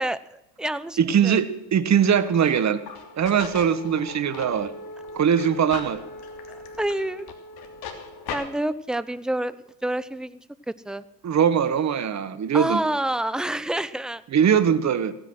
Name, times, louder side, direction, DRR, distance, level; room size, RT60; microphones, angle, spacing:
voice 1, 0.0-1.4 6.8-7.2 8.3-9.6 9.8-10.4 10.7-11.0 12.5-14.2, right 1 dB, ahead, 16 dB, 0.4 m, -28 dB
voice 2, 1.0-2.8 3.2-4.7 5.1-6.0 11.2-12.8 14.3-15.1, right 8 dB, 35° right, 14 dB, 1.3 m, -21 dB
sound 1, 2.1-8.4, left 4 dB, 45° left, 2.8 m, -38 dB
16.5 x 10.0 x 6.3 m, 0.87 s
hypercardioid pair, 75°, 50 cm